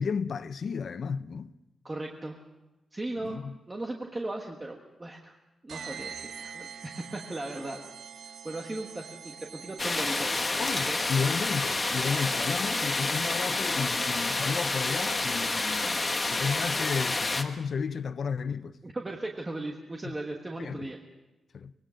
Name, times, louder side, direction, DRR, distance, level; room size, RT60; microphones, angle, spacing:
voice 1, 0.0-1.5 3.2-3.6 10.6-18.8 20.0-20.1 20.6-20.9 21.5-21.7, left 6 dB, 45° left, 0.6 m, -33 dB
voice 2, 1.8-2.4 2.9-3.4 3.7-5.4 5.6-7.8 8.2-10.5 10.9-11.0 18.8-21.0, right 2 dB, 15° right, 1.4 m, -37 dB
sound 1, 5.7-17.1, right 7 dB, 75° right, 1.0 m, -45 dB
sound 2, 9.8-17.4, left 2 dB, 20° left, 1.3 m, -29 dB
25.0 x 19.5 x 6.3 m
wide cardioid pair, 175°, 0 cm